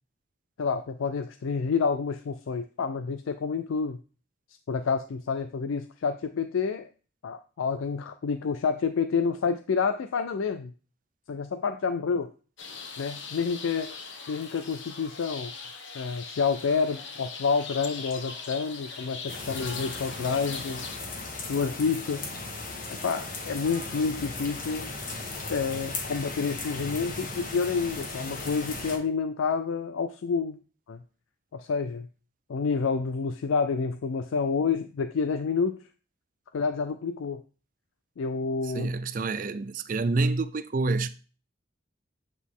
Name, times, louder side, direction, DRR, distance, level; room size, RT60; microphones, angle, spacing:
voice 1, 0.6-4.0 4.7-6.9 7.2-10.7 11.3-12.3 13.0-14.0 14.3-20.9 21.5-22.3 23.0-24.9 25.5-30.6 30.9-31.0 31.5-32.1 32.5-35.9 36.5-37.4 38.2-38.9, left 5 dB, 90° left, 0.4 m, -29 dB
sound 1, 12.6-21.0, left 5 dB, 70° left, 1.1 m, -41 dB
sound 2, 19.3-29.0, left 3 dB, 45° left, 1.2 m, -37 dB
voice 2, 38.7-41.1, right 3 dB, 40° right, 0.4 m, -27 dB
8.2 x 4.0 x 3.7 m
head